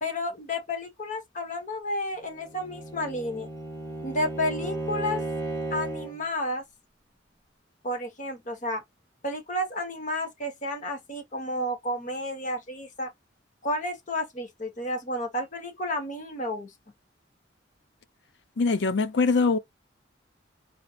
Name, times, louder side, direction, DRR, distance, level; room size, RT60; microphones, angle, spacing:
voice 1, 0.0-3.5 4.0-5.2 5.7-6.6 7.8-8.8 9.2-13.1 13.6-16.7, left 1 dB, 40° left, 1.1 m, -31 dB
Bowed string instrument, 2.3-6.2, right 2 dB, 15° left, 1.4 m, -34 dB
voice 2, 18.6-19.6, left 4 dB, 65° left, 0.6 m, -22 dB
4.2 x 2.8 x 2.4 m
head